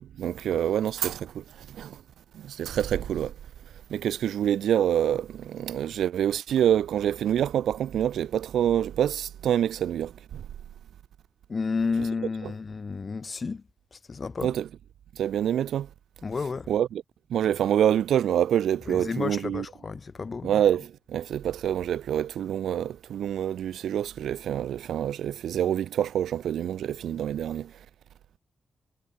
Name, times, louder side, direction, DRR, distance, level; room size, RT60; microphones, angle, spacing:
voice 1, 0.0-2.0 2.3-3.3 3.9-10.4 14.4-14.6 15.2-15.9 16.7-17.0 17.3-19.6 20.4-27.7, right 10 dB, 90° right, 0.6 m, -26 dB
voice 2, 11.5-13.6 13.9-14.5 16.2-16.7 18.9-20.5, left 4 dB, 35° left, 2.2 m, -31 dB
wide cardioid pair, 125°, 0 cm